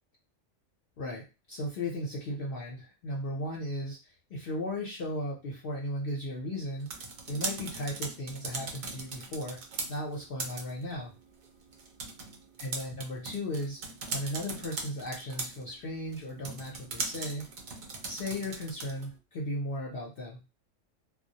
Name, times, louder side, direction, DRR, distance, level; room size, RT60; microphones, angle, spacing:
voice 1, 1.5-6.9 7.3-9.6 9.9-11.1 12.6-13.8 14.1-17.5 18.0-20.4, left 1 dB, 55° left, -3 dB, 0.7 m, -36 dB
sound 1, 6.6-19.2, right 4 dB, 60° right, 0.6 m, -40 dB
2.2 x 2.1 x 2.7 m, 0.28 s
omnidirectional pair, 1.4 m